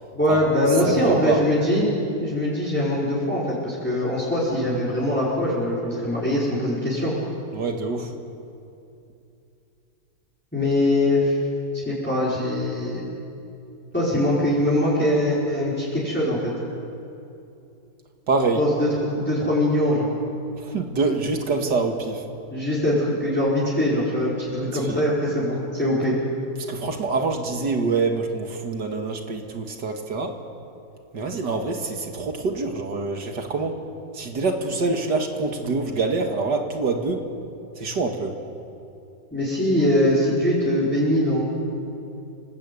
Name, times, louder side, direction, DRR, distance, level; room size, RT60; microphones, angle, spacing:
voice 1, 0.1-1.9 2.2-7.1 10.5-11.4 11.8-13.1 13.9-16.5 18.6-20.1 22.5-26.2 39.3-41.4, left 1 dB, 5° left, -8 dB, 5.1 m, -22 dB
voice 2, 1.1-1.4 7.5-8.1 18.3-18.6 20.6-22.2 24.5-25.0 26.7-30.3 31.1-33.8 34.1-37.2 37.8-38.4, right 3 dB, 80° right, 4 dB, 2.6 m, -25 dB
29.0 x 19.0 x 8.7 m, 2.7 s
omnidirectional pair, 1.8 m